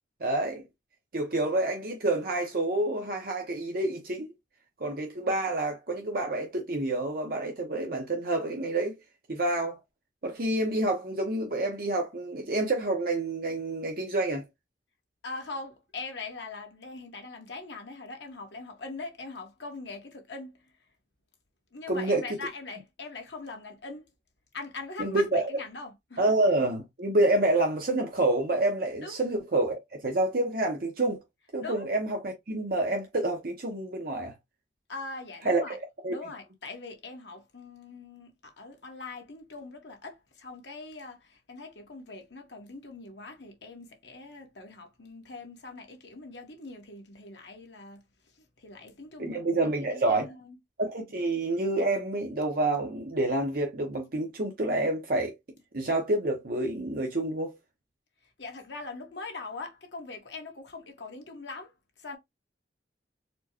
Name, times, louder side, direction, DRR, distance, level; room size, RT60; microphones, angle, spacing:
voice 1, 0.2-0.6 1.1-4.3 4.8-8.9 9.3-9.8 10.2-14.4 21.9-22.2 25.0-25.4 26.2-31.2 31.5-34.3 35.5-35.8 36.0-36.2 49.2-50.3 50.8-55.3 55.7-57.5, right 2 dB, 50° right, 0.7 m, -28 dB
voice 2, 15.2-20.7 21.7-24.1 24.5-26.3 29.0-29.2 31.6-31.9 34.9-35.8 36.1-50.6 58.2-62.2, left 3 dB, 70° left, 1.2 m, -42 dB
4.3 x 2.1 x 2.9 m
head